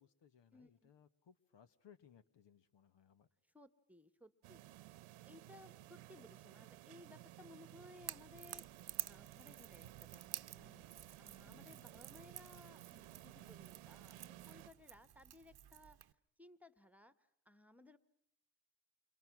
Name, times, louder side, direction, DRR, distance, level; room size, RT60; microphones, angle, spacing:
voice 1, 0.0-3.3 11.4-11.9, left 8 dB, 60° left, 12 dB, 1.4 m, -66 dB
voice 2, 0.5-0.9 3.5-4.6 5.2-10.8 11.2-16.0 16.4-18.0, left 1 dB, 5° right, 12 dB, 1.5 m, -61 dB
sound 1, 4.4-14.7, right 15 dB, 85° right, 1.2 m, -57 dB
Crackle / Crack, 8.0-16.1, right 11 dB, 50° right, 1.0 m, -51 dB
29.5 x 28.0 x 6.2 m, 0.76 s
supercardioid pair, 65°, 49 cm